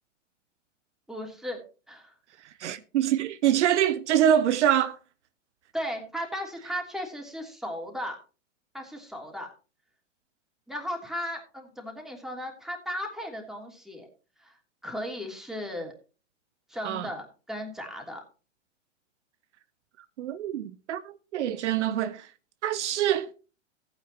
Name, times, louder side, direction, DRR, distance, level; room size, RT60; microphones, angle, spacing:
voice 1, 1.1-1.6 1.9-2.1 5.7-8.2 8.7-9.5 10.7-14.1 14.4-14.6 14.8-15.9 16.7-18.2, equal, ahead, 3.0 m, -36 dB
voice 2, 2.6-5.0 16.8-17.1 20.2-22.3 22.6-23.3, right 10 dB, 65° right, 0.8 m, -25 dB
15.0 x 9.3 x 3.0 m
hypercardioid pair, 120°, 38 cm